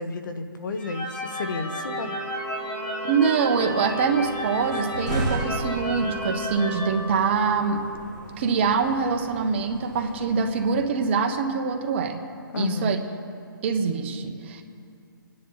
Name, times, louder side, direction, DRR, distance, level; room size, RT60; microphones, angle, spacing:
voice 1, 0.0-2.2 12.5-13.0, left 3 dB, 60° left, 7 dB, 1.3 m, -31 dB
sound 1, 0.8-7.8, left 1 dB, 20° left, 1.8 m, -33 dB
sound 2, 1.9-8.0, right 6 dB, 70° right, 1.0 m, -39 dB
voice 2, 3.0-7.8 8.4-12.2 12.6-13.0 13.6-14.6, right 5 dB, 30° right, 4 dB, 1.1 m, -24 dB
sound 3, 3.6-10.8, right 1 dB, 5° left, 3.9 m, -36 dB
25.0 x 10.0 x 4.1 m, 2.5 s
hypercardioid pair, 165°, 12 cm